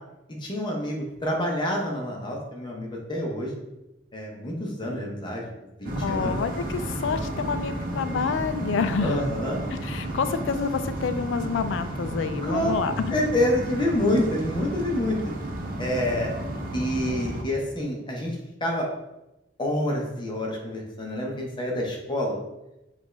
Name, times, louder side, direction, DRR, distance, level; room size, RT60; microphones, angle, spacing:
voice 1, 0.3-3.5 4.1-5.4 5.8-6.4 9.0-9.6 12.4-12.7 13.1-15.3 15.8-16.3 16.7-18.4 18.6-18.9 19.6-22.4, left 1 dB, 25° left, -1 dB, 0.8 m, -27 dB
sound 1, 5.8-17.4, right 1 dB, 50° right, 0.6 m, -32 dB
voice 2, 6.0-9.2 9.8-13.1, left 5 dB, 90° left, 10 dB, 0.3 m, -28 dB
5.2 x 2.5 x 3.2 m, 0.94 s
head